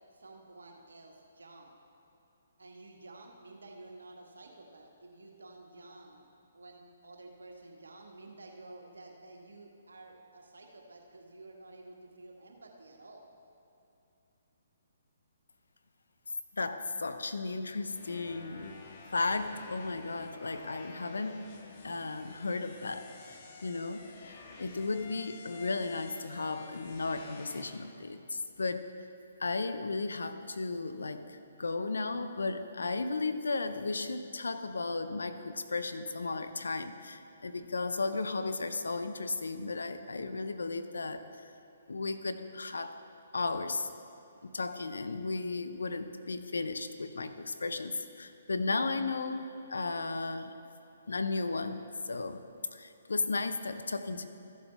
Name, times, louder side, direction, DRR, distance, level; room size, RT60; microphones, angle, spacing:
voice 1, 0.1-1.7 2.6-13.2, right 2 dB, 75° right, 1 dB, 1.5 m, -52 dB
voice 2, 16.5-18.8 19.1-21.5 21.8-28.9 29.4-41.5 41.9-43.0 43.3-43.9 44.4-50.5 51.1-52.4 52.7-54.3, left 3 dB, 75° left, 10 dB, 0.6 m, -35 dB
sound 1, 17.9-27.8, left 3 dB, 45° left, 1.4 m, -50 dB
14.5 x 7.4 x 3.5 m, 2.7 s
figure-of-eight pair, 135°, 0 cm